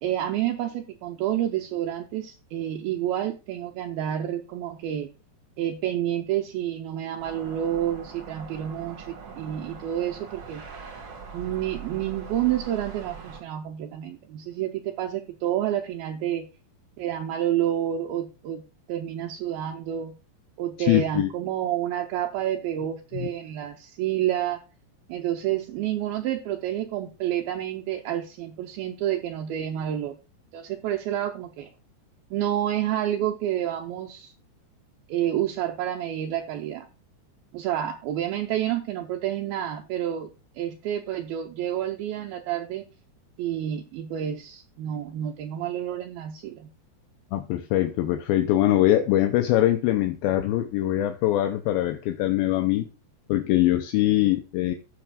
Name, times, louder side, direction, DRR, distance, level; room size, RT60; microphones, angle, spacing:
voice 1, 0.0-5.1 5.6-10.7 11.3-16.5 17.0-18.6 18.9-20.2 20.6-24.6 25.1-30.2 30.5-31.7 32.3-34.3 35.1-36.9 37.5-42.9 43.4-46.7, right 11 dB, 80° right, 2 dB, 2.3 m, -29 dB
sound 1, 7.2-13.4, right 6 dB, 55° right, 1.7 m, -42 dB
voice 2, 20.8-21.3 23.1-23.3 47.3-52.9 53.3-54.7, left 14 dB, 80° left, 6 dB, 2.2 m, -23 dB
16.5 x 6.0 x 2.4 m, 0.31 s
omnidirectional pair, 4.8 m